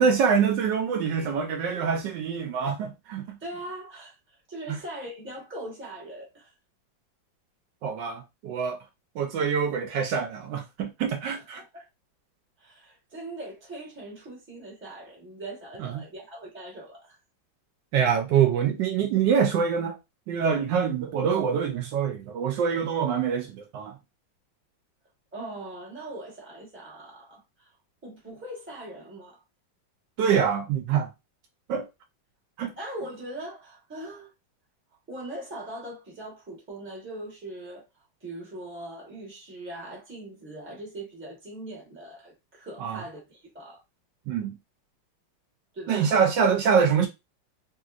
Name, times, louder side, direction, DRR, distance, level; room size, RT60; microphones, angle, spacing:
voice 1, 0.0-3.4 4.7-4.8 7.8-8.8 9.2-11.6 15.8-16.0 17.9-20.0 20.3-24.0 30.2-31.1 31.7-31.9 32.6-32.7 42.8-43.0 44.3-44.6 45.9-47.1, right 7 dB, 75° right, 1.2 m, -25 dB
voice 2, 3.4-6.5 11.2-11.7 12.6-17.2 25.3-27.7 28.0-29.4 32.8-34.3 35.1-37.8 38.2-43.8 45.7-46.1, right 1 dB, 10° right, 0.9 m, -41 dB
3.2 x 2.8 x 2.4 m
omnidirectional pair, 2.1 m